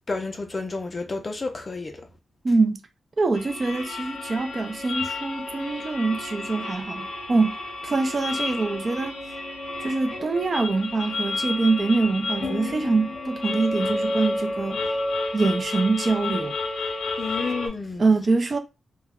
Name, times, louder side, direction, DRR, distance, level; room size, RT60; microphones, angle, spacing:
voice 1, 0.1-1.9 17.2-18.1, left 3 dB, 30° left, 0.4 m, -30 dB
voice 2, 2.4-2.8 3.2-7.6 7.8-9.1 9.8-14.8 15.3-16.5 18.0-18.6, right 3 dB, 35° right, 0.4 m, -24 dB
sound 1, 3.3-17.7, left 2 dB, 85° left, 0.7 m, -31 dB
2.2 x 2.0 x 3.5 m
wide cardioid pair, 155°, 0 cm